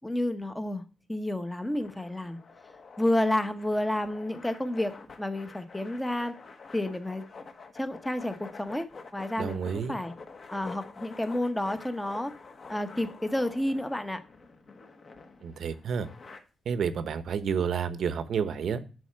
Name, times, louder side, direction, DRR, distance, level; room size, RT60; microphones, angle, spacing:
voice 1, 0.0-0.8 1.1-2.4 3.0-6.3 6.7-7.3 7.8-8.9 9.1-10.1 10.5-12.3 12.7-14.2, left 1 dB, 5° left, 9 dB, 0.9 m, -30 dB
sound 1, 1.7-16.4, left 4 dB, 40° left, 1.2 m, -48 dB
voice 2, 9.4-10.0 15.4-16.1 16.7-18.8, right 7 dB, 60° right, 12 dB, 0.9 m, -30 dB
11.0 x 4.2 x 7.4 m, 0.34 s
wide cardioid pair, 165°, 0 cm